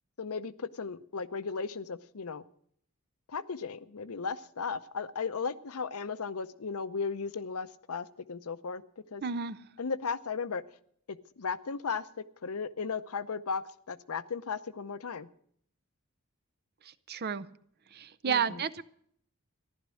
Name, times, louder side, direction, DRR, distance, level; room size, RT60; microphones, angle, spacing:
voice 1, 0.2-2.4 3.3-8.8 9.1-9.2 9.8-10.6 11.1-15.3 18.2-18.6, left 5 dB, 85° left, 13 dB, 0.7 m, -36 dB
voice 2, 9.2-9.6 16.8-17.5 17.9-18.8, right 6 dB, 45° right, 14 dB, 0.6 m, -32 dB
14.5 x 11.5 x 6.3 m, 0.66 s
head